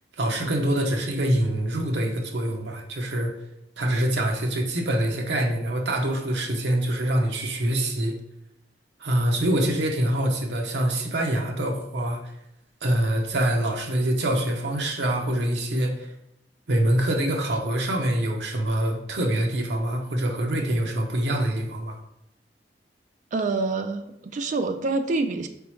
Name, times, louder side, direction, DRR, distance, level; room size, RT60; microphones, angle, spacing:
voice 1, 0.2-3.3 3.8-8.1 9.0-12.2 12.8-16.1 16.7-22.0, right 1 dB, 75° right, 1 dB, 0.7 m, -25 dB
voice 2, 23.3-25.5, right 3 dB, 45° right, 7 dB, 0.3 m, -26 dB
4.1 x 3.5 x 3.0 m, 0.82 s
head